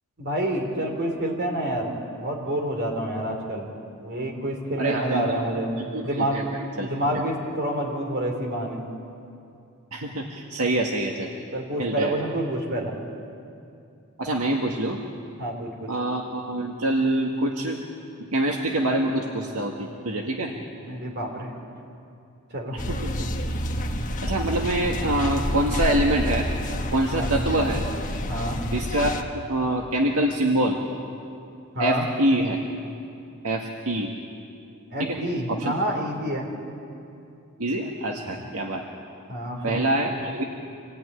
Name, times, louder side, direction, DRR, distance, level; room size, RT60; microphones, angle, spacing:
voice 1, 0.2-3.7 4.0-5.7 6.0-6.4 6.8-8.8 11.5-12.9 15.4-15.9 20.8-21.5 22.5-22.8 27.1-27.3 28.3-28.6 31.7-32.1 34.9-36.5 38.2-38.4 39.3-39.9, right 1 dB, 50° right, 1 dB, 4.2 m, -28 dB
voice 2, 4.8-5.2 5.8-6.9 9.9-11.3 11.8-12.1 14.2-15.0 15.9-17.8 18.3-20.5 22.7-23.3 24.0-26.5 26.9-27.8 28.7-29.2 29.5-30.8 31.8-32.6 33.4-34.1 35.0-35.2 35.5-35.7 37.6-38.8 39.6-40.4, right 1 dB, 80° right, 1 dB, 1.8 m, -25 dB
sound 1, 22.8-29.2, equal, 35° left, 1.5 m, -28 dB
26.5 x 17.5 x 9.9 m, 2.6 s
head